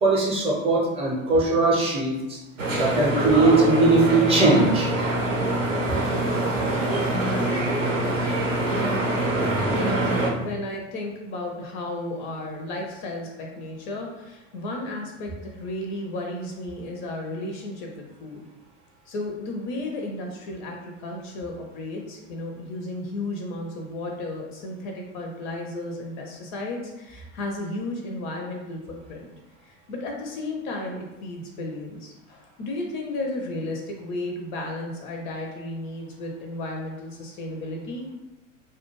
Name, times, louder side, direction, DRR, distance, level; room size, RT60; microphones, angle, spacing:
voice 1, 0.0-2.4 2.8-4.9, right 3 dB, 15° right, -3 dB, 0.5 m, -20 dB
sound 1, 2.6-10.3, right 1 dB, 85° right, 0.6 m, -24 dB
voice 2, 6.1-6.5 7.3-7.7 9.7-18.4 19.1-29.3 29.6-38.1, left 2 dB, 40° left, 1 dB, 0.4 m, -33 dB
2.3 x 2.2 x 2.9 m, 1.0 s
figure-of-eight pair, 80°, 38 cm